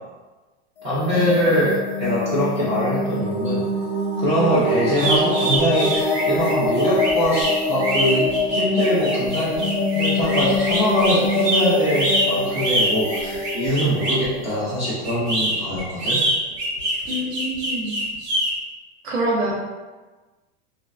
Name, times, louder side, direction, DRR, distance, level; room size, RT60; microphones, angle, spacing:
sound 1, 0.8-15.5, left 2 dB, 55° left, 0.4 m, -25 dB
voice 1, 0.8-3.6 4.2-16.2, equal, 20° right, -10 dB, 0.4 m, -23 dB
sound 2, 4.9-14.3 15.0-18.5, right 1 dB, 85° right, 1.2 m, -24 dB
voice 2, 17.1-17.9 19.0-19.5, right 1 dB, 70° right, -3 dB, 0.8 m, -25 dB
2.4 x 2.1 x 2.3 m, 1.2 s
supercardioid pair, 155°, 34 cm